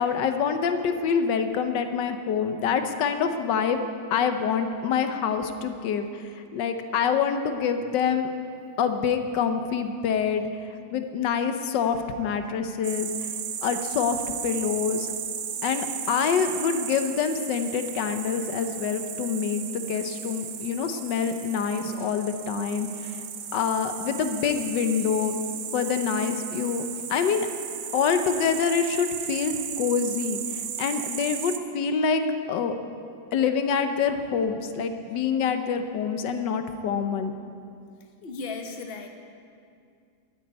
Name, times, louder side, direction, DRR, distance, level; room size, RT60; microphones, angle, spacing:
voice 1, 0.0-8.3 8.8-13.3 13.6-15.1 15.6-23.2 23.5-25.3 25.7-27.5 27.9-32.2 32.5-32.7 33.3-37.4, left 6 dB, 90° left, 8 dB, 1.5 m, -26 dB
sound 1, 12.8-31.6, right 8 dB, 55° right, 1.0 m, -35 dB
voice 2, 38.2-39.1, left 4 dB, 40° left, 4 dB, 1.2 m, -35 dB
12.5 x 9.0 x 9.4 m, 2.4 s
omnidirectional pair, 1.9 m